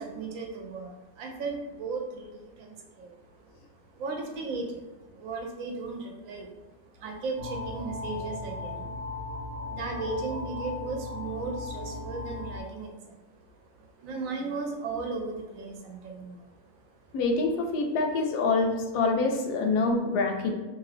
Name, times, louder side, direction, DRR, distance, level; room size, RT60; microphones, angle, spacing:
voice 1, 0.0-6.5 6.9-17.2, right 3 dB, 65° right, 2 dB, 0.9 m, -37 dB
sound 1, 7.4-12.6, left 2 dB, 90° right, 0.5 m, -37 dB
voice 2, 17.1-20.5, left 3 dB, 90° left, 3 dB, 1.1 m, -26 dB
2.6 x 2.5 x 3.2 m, 1.1 s
omnidirectional pair, 1.7 m